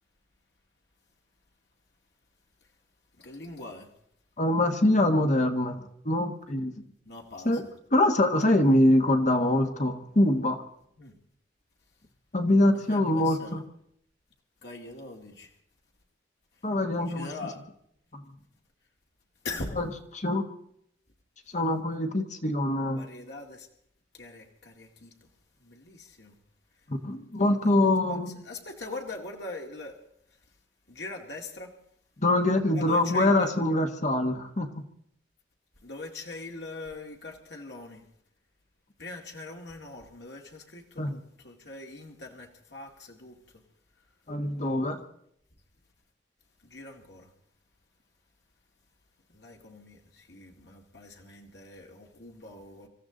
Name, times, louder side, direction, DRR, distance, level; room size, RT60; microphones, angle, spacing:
voice 1, 3.2-3.9 7.1-7.6 11.0-11.2 12.7-13.6 14.6-15.5 17.1-17.6 19.4-19.8 22.9-23.7 24.1-25.1 25.6-26.4 27.4-28.2 28.4-30.0 30.9-31.7 32.7-33.6 35.8-38.0 39.0-43.4 46.6-47.3 49.3-52.9, left 2 dB, 65° left, 1 dB, 2.3 m, -42 dB
voice 2, 4.4-6.7 7.4-10.6 12.3-13.6 16.6-17.3 18.1-18.2 19.8-20.4 21.5-23.1 26.9-28.4 32.2-34.7 41.0-41.1 44.3-45.0, left 1 dB, 40° left, 6 dB, 1.3 m, -24 dB
26.0 x 14.0 x 3.9 m, 0.71 s
head